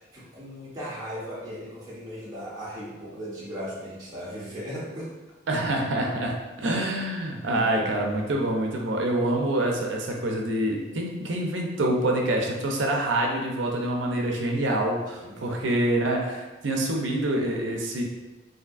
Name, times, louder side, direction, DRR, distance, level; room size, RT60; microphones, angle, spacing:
voice 1, 0.0-5.1 6.6-6.8 7.5-8.4 15.1-15.7, equal, 20° right, -9 dB, 0.7 m, -38 dB
voice 2, 5.5-18.0, right 1 dB, 70° right, 1 dB, 0.5 m, -26 dB
3.4 x 2.6 x 2.4 m, 1.1 s
head